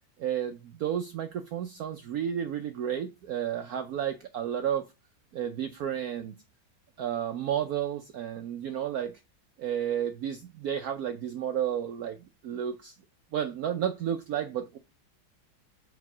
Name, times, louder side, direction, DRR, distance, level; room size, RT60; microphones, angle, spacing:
voice 1, 0.2-4.9 5.3-6.3 7.0-9.1 9.6-12.2 12.4-12.9 13.3-14.8, right 9 dB, 90° right, 0.8 m, -32 dB
4.8 x 4.6 x 5.9 m
omnidirectional pair, 2.3 m